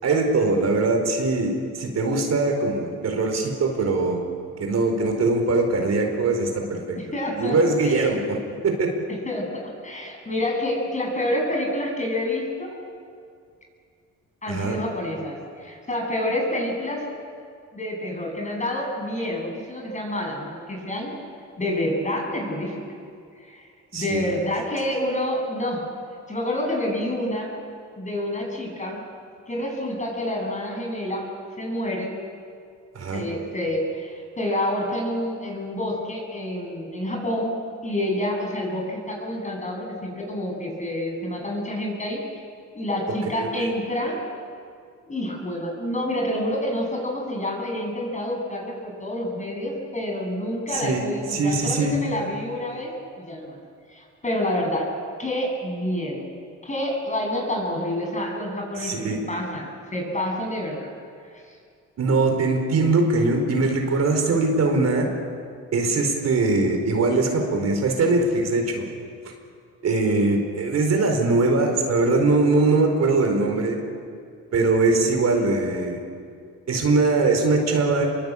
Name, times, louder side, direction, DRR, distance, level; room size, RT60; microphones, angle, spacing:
voice 1, 0.0-4.2 4.6-7.0 7.4-8.4 8.6-8.9 14.5-14.8 23.9-24.3 32.9-33.3 43.3-43.7 50.7-52.0 58.8-59.2 62.0-65.1 65.7-68.9 69.8-73.8 74.5-76.0 76.7-78.1, right 3 dB, 60° right, 3 dB, 4.7 m, -21 dB
voice 2, 7.0-7.6 7.8-8.1 9.1-12.7 14.4-17.1 17.7-21.2 21.6-22.8 23.5-23.6 23.9-25.9 26.3-27.6 28.0-29.1 29.5-31.3 31.6-32.1 33.1-37.5 37.8-42.4 42.7-44.2 45.1-53.6 53.9-54.9 55.2-56.3 56.6-60.9 61.3-61.5, left 1 dB, 25° left, 0 dB, 7.8 m, -28 dB
26.0 x 22.5 x 8.6 m, 2.3 s
cardioid pair, 90°, 30 cm